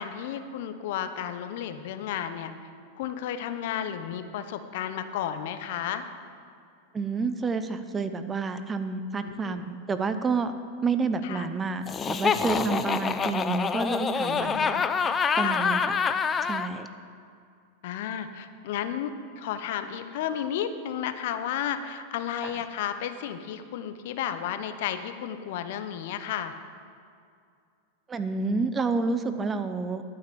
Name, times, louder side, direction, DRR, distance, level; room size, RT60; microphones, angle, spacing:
voice 1, 0.0-2.5 2.9-6.0 9.2-9.6 11.2-11.5 14.3-14.9 15.3-15.6 17.8-26.5, left 9 dB, 65° left, 9 dB, 0.8 m, -33 dB
voice 2, 6.9-10.5 10.8-14.7 15.4-16.0 16.4-16.9 22.4-22.5 28.1-30.0, right 4 dB, 20° right, 10 dB, 0.6 m, -29 dB
Laughter, 11.9-16.7, left 6 dB, 25° left, 0.5 m, -26 dB
12.0 x 5.9 x 6.9 m, 2.4 s
hypercardioid pair, 115°, 0 cm